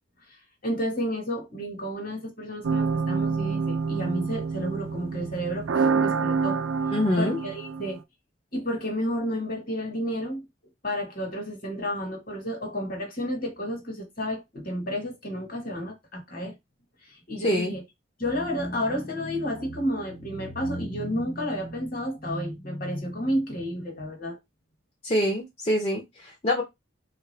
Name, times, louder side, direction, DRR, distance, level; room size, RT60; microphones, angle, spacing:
voice 1, 0.3-6.6 7.2-8.0 8.5-10.5 10.8-16.5 17.0-17.8 18.2-24.4, equal, 45° left, 1.4 m, -31 dB
sound 1, 2.6-8.0, right 5 dB, 85° right, 0.4 m, -27 dB
voice 2, 6.9-7.4 17.4-17.7 25.0-26.6, left 1 dB, 30° left, 0.6 m, -25 dB
3.4 x 2.6 x 3.2 m
head